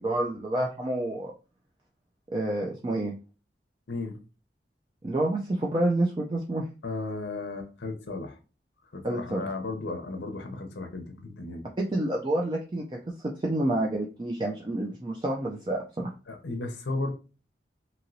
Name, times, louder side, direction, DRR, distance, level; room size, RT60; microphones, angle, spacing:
voice 1, 0.0-1.3 2.3-3.1 5.0-6.7 9.0-9.4 11.8-12.8 13.2-16.1, right 1 dB, 25° right, 0.4 m, -28 dB
voice 2, 3.9-4.2 6.8-8.4 8.9-11.7 16.3-17.1, left 3 dB, 85° left, 0.6 m, -34 dB
2.9 x 2.8 x 2.6 m
head